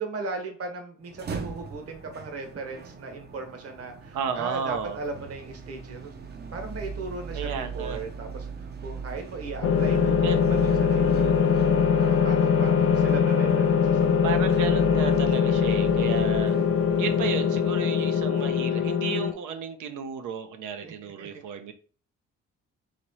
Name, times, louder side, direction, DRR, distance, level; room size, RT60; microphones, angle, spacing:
voice 1, 0.0-6.1 6.5-10.3 10.8-14.2 20.8-21.4, right 3 dB, 50° right, 4 dB, 1.2 m, -37 dB
sound 1, 1.0-19.2, right 5 dB, 35° right, 0.6 m, -39 dB
voice 2, 4.1-5.0 7.3-8.0 10.2-10.4 11.0-11.7 14.2-16.6 17.0-21.7, right 6 dB, 85° right, 8 dB, 0.7 m, -33 dB
sound 2, 9.6-19.3, left 7 dB, 45° left, 0.5 m, -22 dB
4.1 x 3.0 x 3.0 m, 0.41 s
cardioid pair, 90°, 30 cm